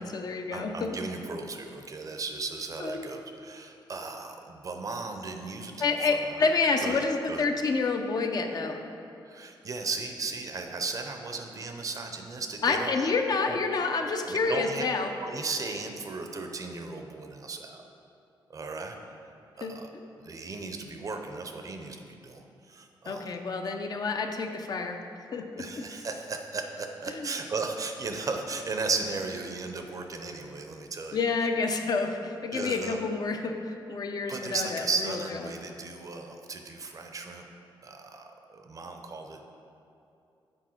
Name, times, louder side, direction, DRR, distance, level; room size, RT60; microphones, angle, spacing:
voice 1, 0.0-1.0 2.8-3.1 5.8-8.8 12.6-15.1 19.6-19.7 23.1-25.0 25.3-25.8 27.1-27.3 31.1-35.2, left 4 dB, 50° left, 5 dB, 0.5 m, -28 dB
voice 2, 0.5-6.5 6.8-7.5 9.3-12.9 13.4-13.6 14.3-14.8 15.2-17.8 18.5-19.0 19.6-19.9 20.2-23.3 25.6-31.2 32.5-33.0 34.3-37.5 37.8-39.4, right 4 dB, 40° right, 4 dB, 0.5 m, -36 dB
6.2 x 4.4 x 4.4 m, 2.7 s
cardioid pair, 110°, 9 cm